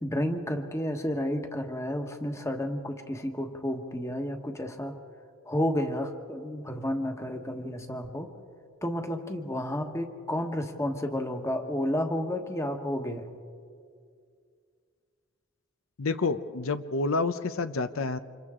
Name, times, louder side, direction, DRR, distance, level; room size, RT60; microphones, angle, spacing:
voice 1, 0.0-5.0 5.4-8.3 8.8-13.3, left 1 dB, 15° left, 5 dB, 1.3 m, -31 dB
voice 2, 16.0-18.2, left 3 dB, 75° left, 11 dB, 0.7 m, -28 dB
29.5 x 27.0 x 3.7 m, 2.2 s
head